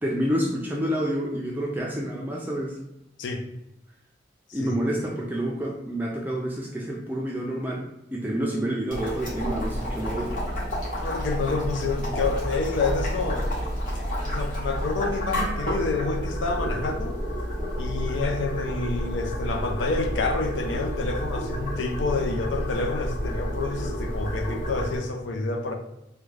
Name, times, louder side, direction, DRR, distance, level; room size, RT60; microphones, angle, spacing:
voice 1, 0.0-2.8 4.5-7.8 8.1-10.4, equal, 10° right, -2 dB, 0.3 m, -28 dB
Boiling, 8.9-25.0, equal, 45° left, 1.2 m, -30 dB
voice 2, 11.0-13.5 14.2-17.2 17.8-25.7, left 3 dB, 85° left, 5 dB, 0.5 m, -28 dB
3.5 x 2.2 x 3.1 m, 0.88 s
head